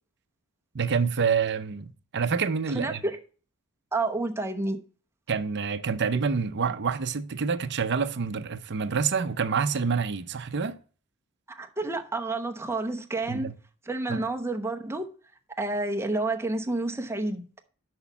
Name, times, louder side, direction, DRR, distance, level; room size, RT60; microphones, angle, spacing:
voice 1, 0.7-3.0 5.3-10.8 13.3-13.5 14.1-14.2, right 5 dB, 50° right, 0.6 m, -27 dB
voice 2, 2.7-3.2 3.9-4.8 11.5-13.5 13.9-15.1 15.6-17.5, right 2 dB, 10° right, 0.9 m, -29 dB
6.4 x 5.8 x 6.9 m
head